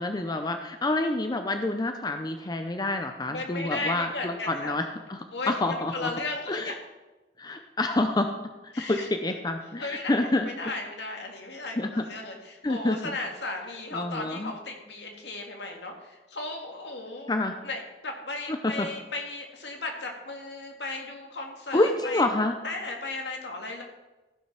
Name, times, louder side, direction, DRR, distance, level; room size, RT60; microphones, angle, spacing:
voice 1, 0.0-5.2 5.5-6.1 6.5-6.7 7.4-8.3 8.8-10.5 11.8-12.0 12.6-13.0 13.9-14.5 17.3-17.6 18.5-18.9 21.7-22.5, left 2 dB, 20° left, 6 dB, 0.6 m, -27 dB
voice 2, 3.3-4.8 5.3-6.8 8.7-9.1 9.8-10.1 10.6-17.3 17.6-22.3 22.6-23.8, left 2 dB, 75° left, 2 dB, 2.0 m, -35 dB
15.0 x 5.7 x 5.8 m, 1.1 s
head